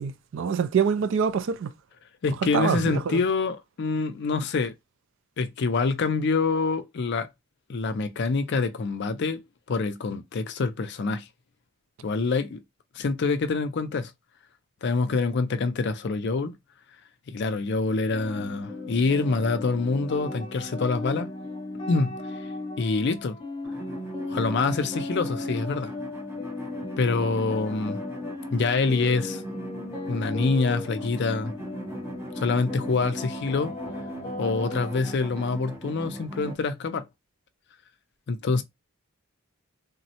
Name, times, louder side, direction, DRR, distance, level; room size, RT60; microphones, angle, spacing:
voice 1, 0.0-1.7 2.5-3.2, right 6 dB, 60° right, 0.3 m, -25 dB
voice 2, 2.2-4.7 5.4-7.3 7.7-9.4 9.7-11.2 12.0-12.6 13.0-14.1 14.8-16.5 17.3-21.3 21.9-22.2 22.8-23.4 24.3-25.9 27.0-28.0 28.5-29.4 30.1-31.5 32.4-33.7 34.4-37.1 38.3-38.6, left 4 dB, 50° left, 0.4 m, -26 dB
sound 1, 18.1-35.1, left 2 dB, 20° left, 0.8 m, -36 dB
sound 2, 23.6-36.5, right 1 dB, 10° right, 0.6 m, -40 dB
3.6 x 2.1 x 2.7 m
head